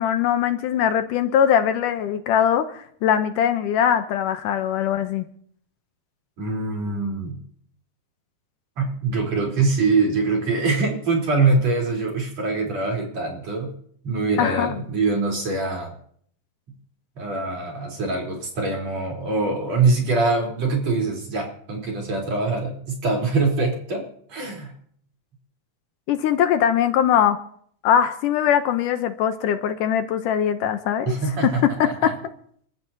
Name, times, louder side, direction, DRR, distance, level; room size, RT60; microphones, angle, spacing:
voice 1, 0.0-5.3 14.4-14.8 26.1-27.4 27.8-31.2 31.6-32.2, left 9 dB, 75° left, 9 dB, 2.3 m, -21 dB
voice 2, 6.4-7.4 8.8-13.7 14.0-15.9 17.2-24.0 24.3-24.7 31.1-32.1, right 3 dB, 50° right, -1 dB, 5.0 m, -23 dB
29.5 x 13.5 x 2.8 m, 0.62 s
omnidirectional pair, 3.9 m